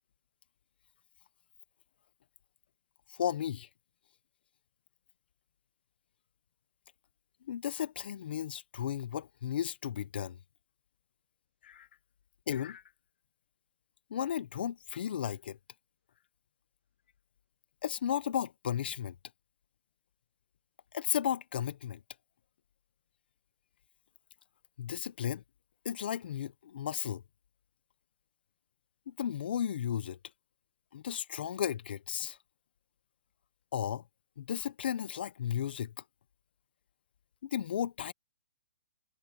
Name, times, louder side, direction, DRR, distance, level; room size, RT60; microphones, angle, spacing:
voice 1, 3.1-3.7 7.5-10.4 11.6-11.9 12.5-12.8 14.1-15.6 17.8-19.2 20.9-22.0 24.8-25.4 25.8-27.2 29.1-30.2 30.9-32.4 33.7-34.0 34.4-35.9 37.4-38.1, left 9 dB, 45° left, 0.7 m, -34 dB
hypercardioid pair, 170°, 7 cm